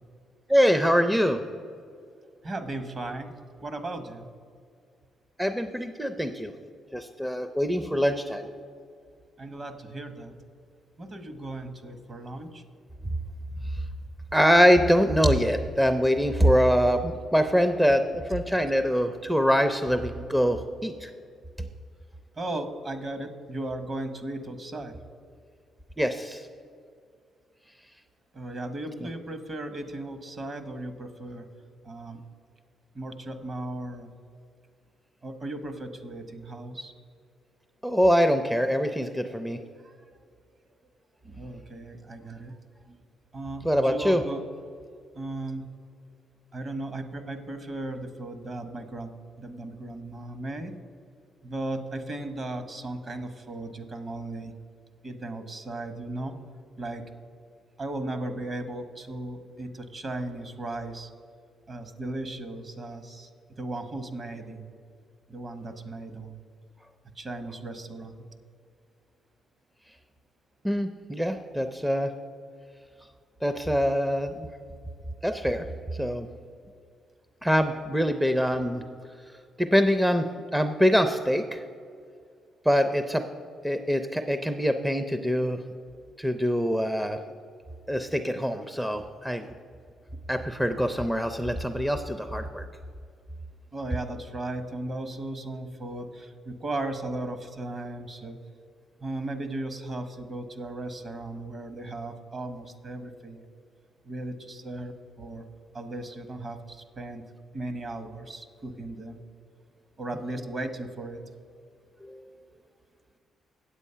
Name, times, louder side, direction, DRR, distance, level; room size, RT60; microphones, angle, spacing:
voice 1, 0.5-1.4 5.4-6.5 6.9-8.5 14.3-21.1 21.6-21.7 26.0-26.5 37.8-39.6 43.6-44.2 70.6-72.1 73.4-74.5 75.2-75.6 76.0-76.3 77.4-78.8 79.6-80.3 80.5-81.6 82.7-83.2 83.6-85.6 86.2-87.2 87.9-89.5 90.3-92.6 112.1-112.2, equal, 5° right, 8 dB, 0.5 m, -24 dB
voice 2, 2.4-3.3 3.6-4.3 9.4-10.4 11.0-12.6 22.3-24.9 28.3-31.5 31.8-32.2 32.9-34.1 35.2-36.9 39.8-39.9 41.2-42.6 42.9-43.0 43.3-44.4 45.1-45.7 46.5-49.1 49.4-50.7 51.4-54.5 55.0-56.4 56.8-57.0 57.8-61.1 61.7-63.3 63.6-64.7 65.3-66.4 67.1-68.2 93.7-98.4 99.0-103.5 104.0-105.5 105.7-107.2 107.5-109.2 110.0-111.2, right 2 dB, 40° right, 9 dB, 1.0 m, -36 dB
8.2 x 8.2 x 5.5 m, 2.2 s
cardioid pair, 90°, 0 cm